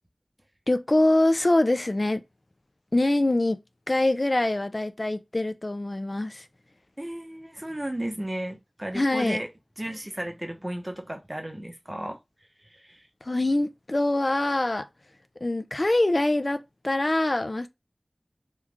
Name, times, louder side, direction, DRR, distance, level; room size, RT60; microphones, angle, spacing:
voice 1, 0.7-2.2 2.9-3.6 3.9-6.5 8.9-9.4 13.2-14.9 15.4-17.7, left 2 dB, 50° left, 0.3 m, -24 dB
voice 2, 7.0-9.5 9.8-12.2 12.7-13.0, right 1 dB, 25° right, 0.8 m, -34 dB
3.0 x 2.3 x 3.4 m
wide cardioid pair, 50°, 0 cm